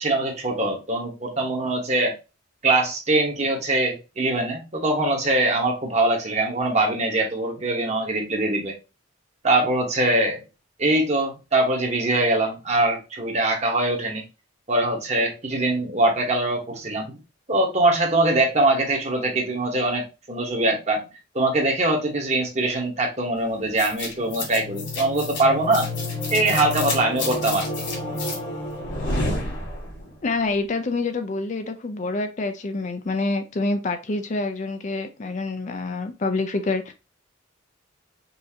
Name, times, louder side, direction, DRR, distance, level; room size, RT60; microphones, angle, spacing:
voice 1, 0.0-2.1 2.6-8.7 9.4-10.4 10.8-14.2 14.7-17.2 17.5-21.0 21.3-25.9 26.3-27.7, right 2 dB, 35° right, 1.2 m, -22 dB
sound 1, 23.8-30.1, left 2 dB, 75° left, 2.1 m, -29 dB
voice 2, 30.2-36.9, left 3 dB, 35° left, 0.4 m, -27 dB
5.5 x 2.7 x 2.7 m
head